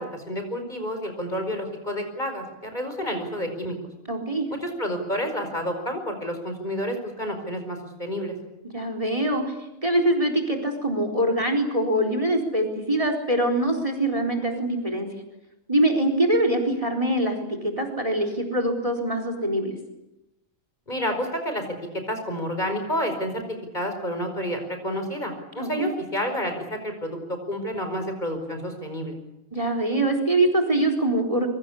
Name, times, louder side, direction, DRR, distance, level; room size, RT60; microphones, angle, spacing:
voice 1, 0.0-3.8 4.6-8.4 20.9-21.6 22.1-23.4 23.7-29.2, equal, 30° left, 5 dB, 5.2 m, -29 dB
voice 2, 4.1-4.5 8.7-9.6 9.8-15.1 15.7-19.7 25.6-25.9 29.5-31.5, right 1 dB, 25° right, 6 dB, 4.2 m, -23 dB
25.5 x 23.5 x 8.5 m, 0.91 s
omnidirectional pair, 1.4 m